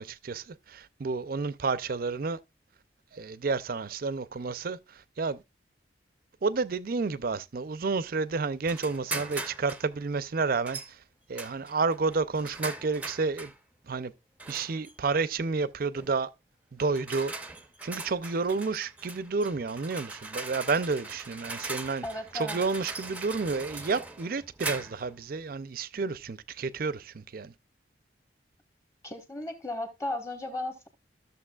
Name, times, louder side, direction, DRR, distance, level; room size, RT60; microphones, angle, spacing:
voice 1, 0.0-2.4 3.1-5.4 6.4-10.8 11.3-13.5 13.9-14.1 14.5-16.3 16.7-17.3 17.8-22.0 22.3-27.5, right 4 dB, 50° right, 0.5 m, -30 dB
sound 1, 8.7-9.9 10.7-10.9 11.4-13.6 14.4-14.9 16.0-16.2 16.8-25.1, right 3 dB, 10° right, 0.6 m, -40 dB
voice 2, 22.0-22.6 29.0-30.9, left 2 dB, 15° left, 1.3 m, -35 dB
13.5 x 6.7 x 2.3 m
head